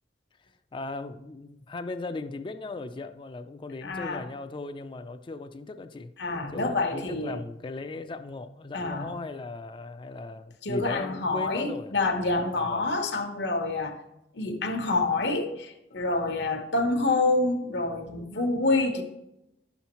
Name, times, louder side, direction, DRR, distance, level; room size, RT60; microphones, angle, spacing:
voice 1, 0.7-6.1 6.5-11.9 12.6-12.9, left 3 dB, 30° left, 0.4 m, -37 dB
voice 2, 3.8-4.2 6.2-7.4 8.7-9.1 10.6-14.0 14.3-19.0, left 2 dB, 75° left, 1.0 m, -27 dB
10.5 x 7.1 x 3.0 m
head